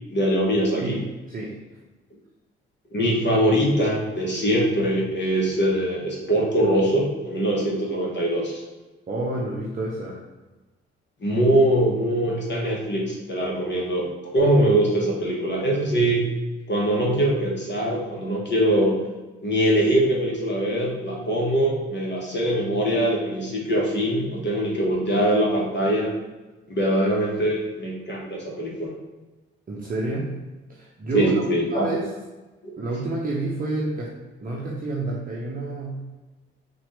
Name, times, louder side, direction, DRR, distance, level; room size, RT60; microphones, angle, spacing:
voice 1, 0.1-1.0 2.9-8.6 11.2-14.1 14.3-16.2 16.7-19.0 19.4-26.1 26.7-28.9 31.1-31.8, right 1 dB, 35° left, -3 dB, 1.5 m, -22 dB
voice 2, 0.8-1.6 9.1-10.2 29.7-30.3 30.7-31.3 31.6-32.1 32.8-34.1 34.4-36.1, right 2 dB, 30° right, -4 dB, 0.9 m, -29 dB
5.8 x 2.7 x 3.3 m, 1.2 s
figure-of-eight pair, 45°, 30 cm